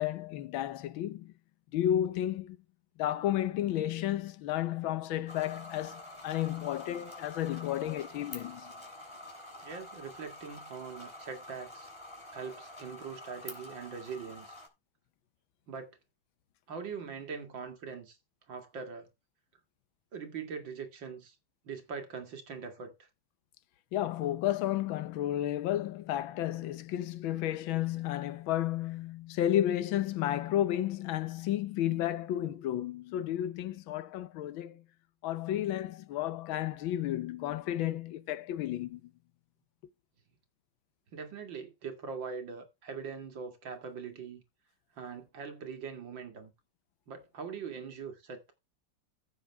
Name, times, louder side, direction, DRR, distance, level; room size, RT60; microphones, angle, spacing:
voice 1, 0.0-1.3 1.7-2.6 3.0-8.7 23.9-34.8 35.2-39.0, left 12 dB, 90° left, 1.6 m, -32 dB
sound 1, 5.3-14.7, left 1 dB, 15° left, 3.4 m, -48 dB
voice 2, 9.6-11.9 12.3-14.6 15.7-15.9 16.7-18.2 18.5-19.1 20.1-21.4 21.6-23.1 41.1-44.4 45.0-46.5 47.1-48.5, right 5 dB, 70° right, 2.7 m, -42 dB
15.0 x 7.2 x 3.5 m
omnidirectional pair, 2.1 m